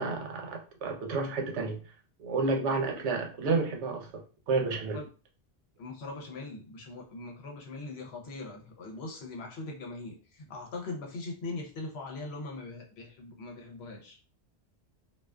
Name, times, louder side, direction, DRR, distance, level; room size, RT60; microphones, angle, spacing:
voice 1, 0.0-1.8 2.2-5.0, right 3 dB, 75° right, 2 dB, 0.9 m, -31 dB
voice 2, 5.8-14.2, left 3 dB, 65° left, 0 dB, 0.9 m, -41 dB
2.4 x 2.3 x 2.2 m, 0.36 s
omnidirectional pair, 1.2 m